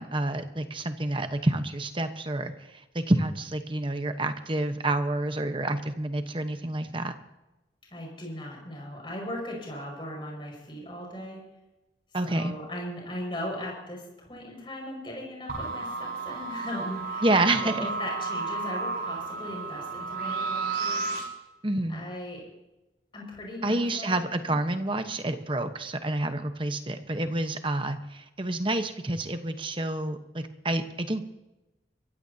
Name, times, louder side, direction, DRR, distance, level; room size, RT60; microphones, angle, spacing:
voice 1, 0.0-7.1 12.1-12.5 17.2-17.8 21.6-22.0 23.6-31.3, right 2 dB, 30° right, 8 dB, 1.1 m, -28 dB
voice 2, 7.9-11.4 12.2-17.3 17.6-21.0 21.9-22.4 23.1-24.6, left 1 dB, 30° left, -1 dB, 5.9 m, -38 dB
sound 1, 15.5-21.2, right 4 dB, 60° right, 5.4 m, -32 dB
23.5 x 16.0 x 2.8 m, 0.99 s
head